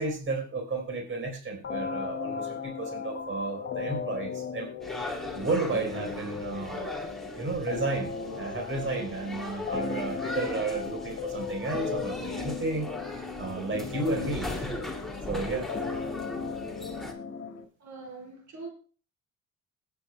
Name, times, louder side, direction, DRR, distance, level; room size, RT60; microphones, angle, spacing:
voice 1, 0.0-4.7 5.3-7.0 7.4-12.9 13.4-14.8 15.3-15.7, right 3 dB, 40° right, 3.9 m, -32 dB
sound 1, 1.6-17.6, left 5 dB, 55° left, 1.9 m, -37 dB
sound 2, 4.8-17.1, left 2 dB, ahead, 2.5 m, -39 dB
voice 2, 17.8-18.7, right 3 dB, 75° right, 4.4 m, -42 dB
21.5 x 9.6 x 2.2 m
cardioid pair, 90°, 30 cm